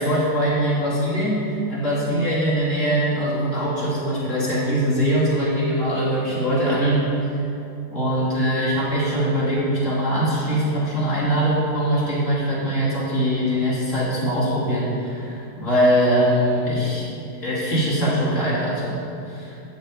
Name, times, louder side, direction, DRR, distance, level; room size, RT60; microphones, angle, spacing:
voice 1, 0.0-7.1 7.9-17.0 17.4-19.0 19.3-19.5, equal, 50° left, -8 dB, 3.8 m, -22 dB
13.0 x 5.0 x 8.5 m, 2.7 s
omnidirectional pair, 1.7 m